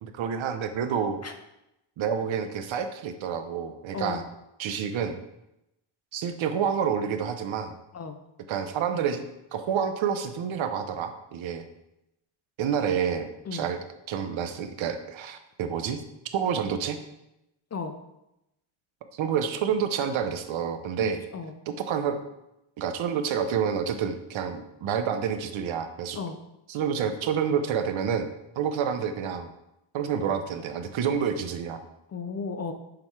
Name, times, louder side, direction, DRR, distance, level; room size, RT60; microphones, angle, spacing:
voice 1, 0.0-1.2 2.0-4.2 4.6-5.2 6.1-7.8 8.5-9.2 9.5-11.6 12.6-13.8 14.1-16.0 16.3-17.0 19.1-21.2 21.7-22.2 22.8-26.2 26.7-28.3 28.6-29.5 29.9-31.8, right 7 dB, 70° right, 8 dB, 0.7 m, -28 dB
voice 2, 3.9-4.2 7.9-8.2 13.5-13.7 17.7-18.0 21.0-21.5 26.1-26.4 32.1-32.7, left 5 dB, 35° left, 6 dB, 0.4 m, -34 dB
6.7 x 3.8 x 4.6 m, 0.87 s
wide cardioid pair, 170°, 49 cm